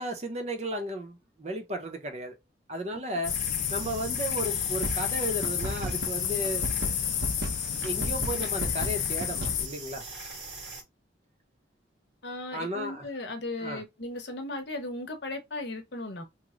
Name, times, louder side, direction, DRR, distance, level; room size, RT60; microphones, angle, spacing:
voice 1, 0.0-2.4 2.7-3.4 3.7-6.7 7.8-10.1 12.5-13.1 13.6-13.8, right 1 dB, 35° right, 0.7 m, -34 dB
sound 1, 3.2-9.7, left 11 dB, 85° left, 0.4 m, -31 dB
sound 2, 3.2-10.8, right 3 dB, 90° right, 1.7 m, -42 dB
sound 3, 4.3-4.5 4.8-9.6, right 1 dB, 70° right, 0.8 m, -33 dB
voice 2, 12.2-16.2, left 2 dB, 65° left, 0.8 m, -36 dB
3.1 x 2.1 x 3.6 m
head